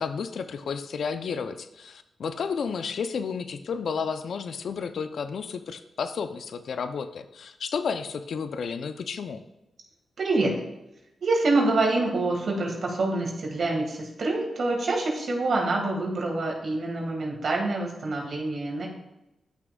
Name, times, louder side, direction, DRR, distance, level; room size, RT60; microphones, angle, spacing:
voice 1, 0.0-9.4, left 6 dB, 70° left, 10 dB, 0.5 m, -32 dB
voice 2, 10.2-10.6 11.2-18.9, right 2 dB, 65° right, 0 dB, 1.8 m, -26 dB
11.0 x 6.1 x 2.3 m, 0.92 s
supercardioid pair, 45°, 0 cm